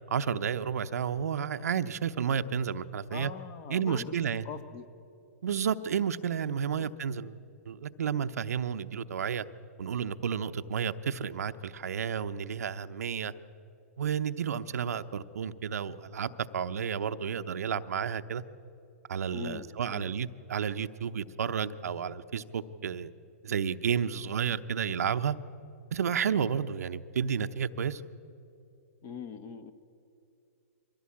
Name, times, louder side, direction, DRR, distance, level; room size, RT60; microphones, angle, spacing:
voice 1, 0.1-3.3 3.7-4.4 5.4-7.4 7.7-9.4 9.8-13.3 14.0-18.4 19.1-23.1 23.4-25.3 25.9-28.0, right 7 dB, 75° right, 10 dB, 0.8 m, -31 dB
voice 2, 3.1-4.2 4.4-4.9 6.8-6.9 19.3-20.1 29.0-29.7, left 6 dB, 30° left, 11 dB, 1.3 m, -42 dB
23.0 x 15.5 x 8.6 m, 2.7 s
hypercardioid pair, 135°, 8 cm